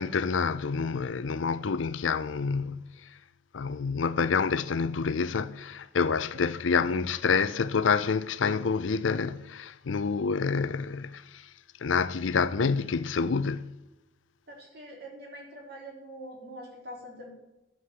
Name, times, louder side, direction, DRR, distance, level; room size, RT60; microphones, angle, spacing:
voice 1, 0.0-3.1 3.5-11.5 11.8-13.7, left 5 dB, 90° left, 0.5 m, -28 dB
voice 2, 14.5-17.3, equal, 55° right, 3.7 m, -44 dB
11.5 x 7.7 x 6.9 m
head